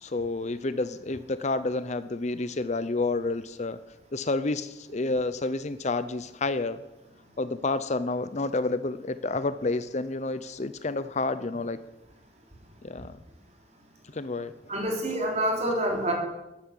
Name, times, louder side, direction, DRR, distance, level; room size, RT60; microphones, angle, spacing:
voice 1, 0.0-3.8 4.1-6.8 7.4-11.8 12.8-13.2 14.1-14.5, left 3 dB, 40° left, 13 dB, 0.6 m, -29 dB
voice 2, 14.7-16.1, right 1 dB, 35° right, 1 dB, 3.9 m, -27 dB
13.5 x 11.5 x 8.4 m, 1.0 s
head